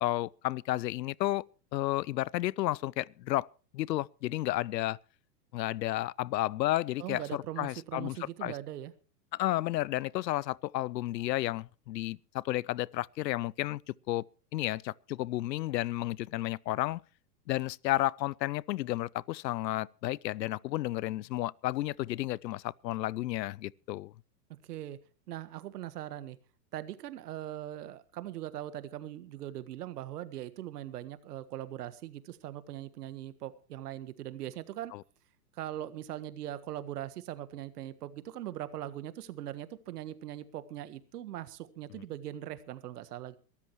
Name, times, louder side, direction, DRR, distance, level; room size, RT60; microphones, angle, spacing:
voice 1, 0.0-1.5 1.7-3.5 3.7-5.0 5.5-8.5 9.3-14.2 14.5-17.0 17.5-24.1 34.9-35.0, left 16 dB, 85° left, 0.6 m, -32 dB
voice 2, 7.0-8.9 24.7-25.0 25.3-26.4 26.7-34.9 35.5-43.4, right 12 dB, 65° right, 1.5 m, -41 dB
22.5 x 13.0 x 3.1 m
hypercardioid pair, 135°, 49 cm